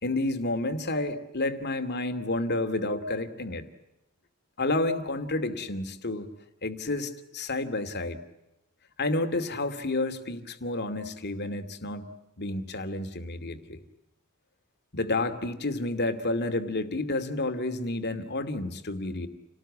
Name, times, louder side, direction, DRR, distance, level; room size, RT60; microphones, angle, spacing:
voice 1, 0.0-3.7 4.6-6.3 6.6-8.2 9.0-12.1 12.4-13.8 14.9-19.3, left 2 dB, 50° left, 8 dB, 2.5 m, -30 dB
29.0 x 19.0 x 8.6 m, 0.94 s
head